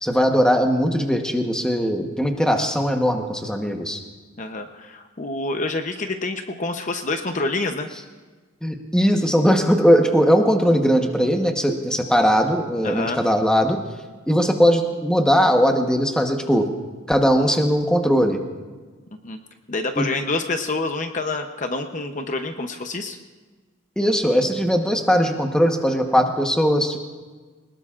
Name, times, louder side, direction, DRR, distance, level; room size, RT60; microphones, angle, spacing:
voice 1, 0.0-4.0 8.6-13.8 14.3-16.7 17.1-18.4 20.0-20.1 24.0-27.0, equal, 5° left, 3 dB, 1.1 m, -19 dB
voice 2, 4.4-7.9 12.8-13.2 19.2-19.4 19.7-23.2, left 3 dB, 35° left, 6 dB, 0.8 m, -27 dB
22.5 x 20.0 x 2.5 m, 1.4 s
head